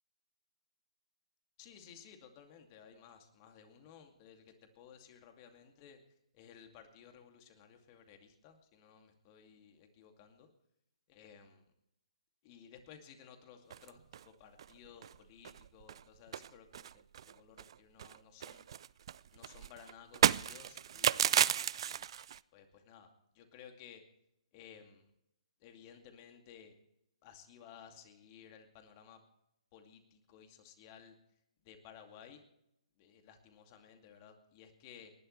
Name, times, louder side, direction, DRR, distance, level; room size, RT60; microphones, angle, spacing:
voice 1, 1.6-6.0 6.3-10.5 11.1-11.6 12.4-18.7 19.3-22.1 22.5-24.0 24.5-25.1 25.6-26.8 27.2-29.2 29.7-31.2 31.6-32.4 33.0-35.1, left 8 dB, 30° left, 5 dB, 2.4 m, -57 dB
sound 1, 13.7-14.2 14.6-14.7 15.0-15.2 15.4-16.0 16.3-17.7 18.0-22.4, right 9 dB, 50° right, 0.4 m, -33 dB
29.5 x 12.0 x 3.3 m, 0.82 s
figure-of-eight pair, 135°, 4 cm